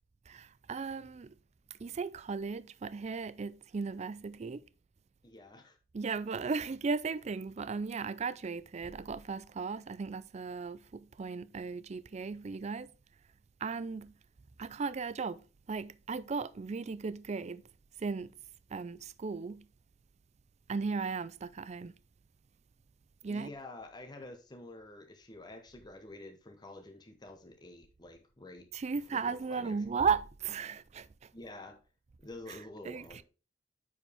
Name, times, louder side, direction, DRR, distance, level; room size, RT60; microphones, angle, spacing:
voice 1, 0.3-1.3 1.8-4.6 5.9-12.9 13.6-14.1 14.6-17.6 18.0-18.3 18.7-19.7 20.7-21.9 23.2-23.5 28.7-31.1 32.9-33.2, right 5 dB, 35° right, 0.4 m, -36 dB
voice 2, 5.2-5.8 23.3-28.7 29.1-29.8 31.3-31.8 32.2-33.2, left 2 dB, 25° left, 0.9 m, -49 dB
9.8 x 4.8 x 3.4 m
head